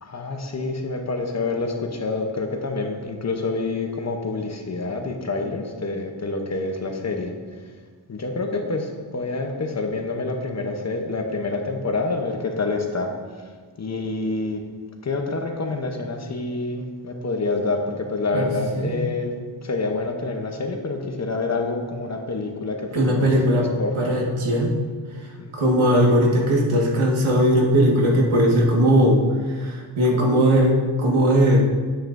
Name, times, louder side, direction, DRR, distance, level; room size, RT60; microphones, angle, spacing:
voice 1, 0.0-7.6 8.1-14.7 15.0-24.2 25.4-25.6, left 3 dB, 35° left, 4 dB, 0.8 m, -27 dB
voice 2, 22.9-23.7 23.9-24.7 25.5-29.2 29.5-31.6, equal, 85° right, -1 dB, 1.7 m, -19 dB
8.9 x 8.9 x 2.6 m, 1.5 s
wide cardioid pair, 140°, 47 cm